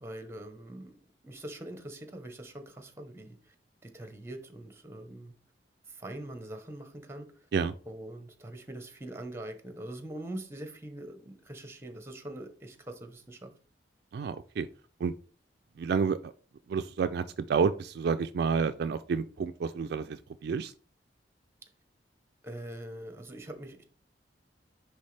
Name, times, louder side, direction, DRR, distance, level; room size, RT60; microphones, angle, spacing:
voice 1, 0.0-3.5 3.8-5.3 5.9-7.3 7.9-13.5 22.4-23.8, right 1 dB, 15° right, 6 dB, 0.9 m, -43 dB
voice 2, 14.1-14.7 15.0-15.1 15.8-16.3 16.7-17.2 17.5-20.7, right 5 dB, 60° right, 10 dB, 0.3 m, -29 dB
9.8 x 3.3 x 3.3 m, 0.41 s
head